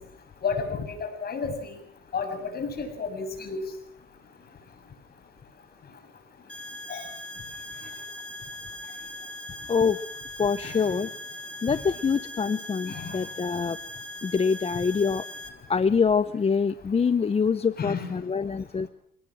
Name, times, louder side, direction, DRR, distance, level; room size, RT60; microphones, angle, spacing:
voice 1, 0.4-1.8 2.1-3.6 6.9-7.0 10.6-10.7 12.9-13.1 17.8-18.1, left 5 dB, 50° left, 6 dB, 7.0 m, -31 dB
sound 1, 6.5-15.5, left 1 dB, 5° left, 3.6 m, -40 dB
voice 2, 9.7-10.0 10.4-11.1 11.6-13.8 14.2-15.2 15.7-18.9, left 5 dB, 30° left, 13 dB, 0.8 m, -25 dB
27.0 x 18.5 x 6.3 m, 0.68 s
cardioid pair, 90°, 20 cm